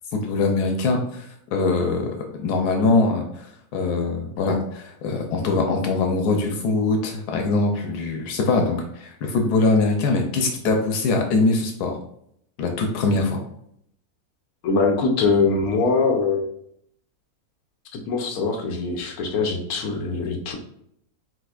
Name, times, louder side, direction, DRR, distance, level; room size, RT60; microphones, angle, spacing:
voice 1, 0.1-12.0 12.6-13.4, left 3 dB, 85° left, 3 dB, 1.2 m, -22 dB
voice 2, 14.6-16.5 17.9-20.6, left 4 dB, 70° left, 2 dB, 1.3 m, -22 dB
7.7 x 2.6 x 2.4 m, 0.72 s
omnidirectional pair, 1.7 m